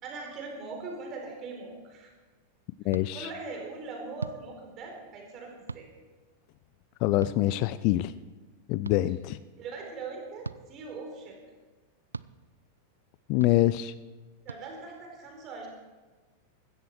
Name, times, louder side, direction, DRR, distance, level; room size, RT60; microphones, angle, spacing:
voice 1, 0.0-2.1 3.1-5.9 9.6-11.4 14.4-15.7, right 3 dB, 35° right, 4.1 m, -41 dB
voice 2, 2.8-3.3 7.0-8.1 8.7-9.4 13.3-13.9, left 15 dB, 45° left, 0.4 m, -25 dB
sound 1, 2.9-3.1 4.2-4.4 5.7-5.9 7.2-7.4 8.8-9.0 10.4-10.6 12.1-12.3 13.4-13.5 14.5-14.6, right 4 dB, 80° right, 0.3 m, -38 dB
16.0 x 13.0 x 4.6 m
figure-of-eight pair, 90°, 0 cm